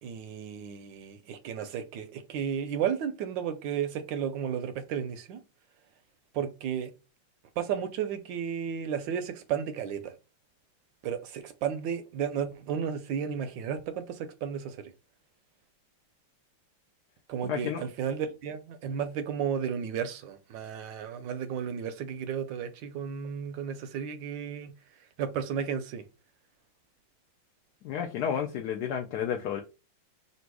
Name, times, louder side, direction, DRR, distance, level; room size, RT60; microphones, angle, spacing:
voice 1, 0.0-5.4 6.3-6.9 7.6-10.1 11.0-14.9 17.3-24.7 25.2-26.0, right 8 dB, 75° right, 1.1 m, -33 dB
voice 2, 17.5-17.9 27.8-29.6, left 8 dB, 85° left, 0.8 m, -31 dB
3.4 x 2.6 x 4.5 m
omnidirectional pair, 2.2 m